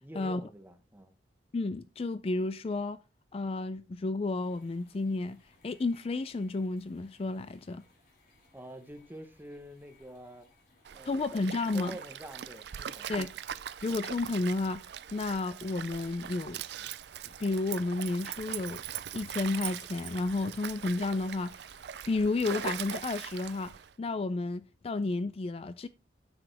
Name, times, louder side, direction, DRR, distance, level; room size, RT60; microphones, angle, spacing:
voice 1, 0.0-1.1 8.5-10.5 10.9-11.2 11.7-13.1, right 1 dB, 10° right, 1.1 m, -46 dB
voice 2, 1.5-3.0 3.3-7.8 11.1-12.0 13.1-13.3 13.8-14.8 15.1-16.6 17.4-18.8 19.1-21.6 22.1-25.9, left 3 dB, 35° left, 0.4 m, -32 dB
sound 1, 4.4-23.0, left 3 dB, 55° left, 4.2 m, -65 dB
Stream, 10.8-23.9, right 9 dB, 65° right, 0.4 m, -41 dB
9.5 x 7.1 x 3.4 m
head